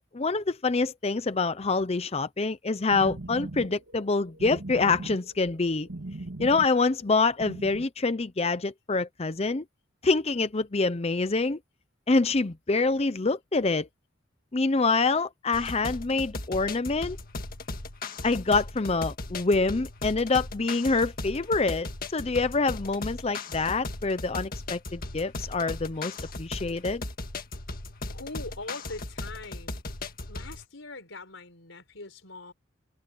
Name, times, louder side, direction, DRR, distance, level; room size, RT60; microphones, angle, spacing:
voice 1, 0.1-5.9 6.4-9.6 10.0-11.6 12.1-13.9 14.5-17.2 18.2-21.9 22.1-27.0, left 3 dB, 30° left, 0.6 m, -26 dB
sound 1, 2.7-7.9, right 2 dB, 90° right, 1.7 m, -39 dB
sound 2, 15.5-30.7, left 2 dB, 50° left, 1.8 m, -37 dB
voice 2, 28.1-29.8 30.3-32.5, left 3 dB, 75° left, 4.7 m, -42 dB
head